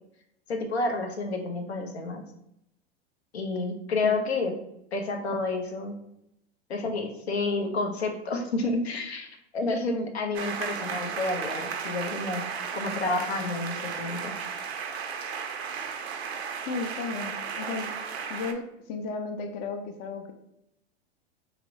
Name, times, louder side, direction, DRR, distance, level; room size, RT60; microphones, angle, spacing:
voice 1, 0.5-2.2 3.3-4.5 4.9-5.9 6.7-9.3 9.5-12.4 12.7-14.3, left 3 dB, 80° left, 3 dB, 0.7 m, -29 dB
sound 1, 10.3-18.5, right 6 dB, 80° right, 0.5 m, -34 dB
voice 2, 16.7-17.9 18.3-20.3, left 4 dB, 35° left, 6 dB, 0.4 m, -34 dB
2.9 x 2.0 x 3.6 m, 0.80 s
hypercardioid pair, 100°, 31 cm